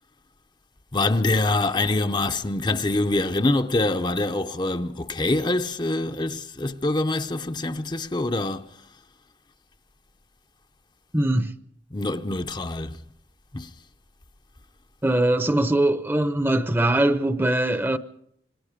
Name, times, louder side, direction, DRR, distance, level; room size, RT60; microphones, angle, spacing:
voice 1, 0.9-8.7 11.9-13.0 13.5-13.7, left 2 dB, 25° left, 0.7 m, -25 dB
voice 2, 11.1-11.5 15.0-18.0, right 1 dB, 10° right, 0.8 m, -21 dB
26.5 x 20.5 x 5.1 m
head